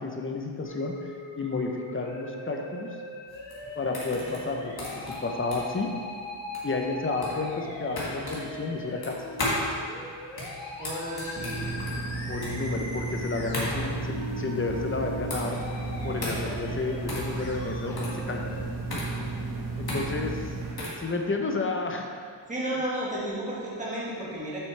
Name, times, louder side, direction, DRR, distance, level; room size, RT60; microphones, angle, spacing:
voice 1, 0.0-2.9 3.8-5.9 6.6-9.2 12.3-15.6 16.0-18.4 19.8-20.5 21.0-22.1, left 3 dB, 25° left, 2 dB, 0.7 m, -31 dB
Musical instrument, 0.6-18.6, left 1 dB, 65° left, 1.2 m, -40 dB
sound 1, 3.3-21.1, left 1 dB, 50° left, 1.9 m, -36 dB
voice 2, 10.8-11.6 22.5-24.6, right 1 dB, 15° right, -7 dB, 1.8 m, -32 dB
sound 2, 11.4-20.7, right 3 dB, 45° right, 1.5 m, -34 dB
7.9 x 6.1 x 3.3 m, 2.1 s
wide cardioid pair, 110°, 48 cm